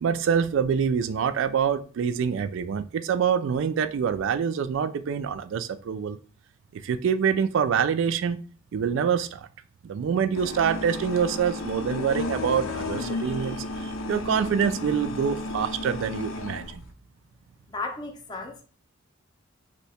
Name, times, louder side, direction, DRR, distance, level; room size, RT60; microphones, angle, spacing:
voice 1, 0.0-6.2 6.7-8.4 8.7-9.5 9.8-16.8, right 7 dB, 65° right, 0.3 m, -26 dB
sound 1, 10.3-16.9, left 2 dB, 85° left, 0.5 m, -33 dB
voice 2, 17.7-18.6, left 3 dB, 20° left, 0.5 m, -34 dB
2.7 x 2.2 x 4.1 m
head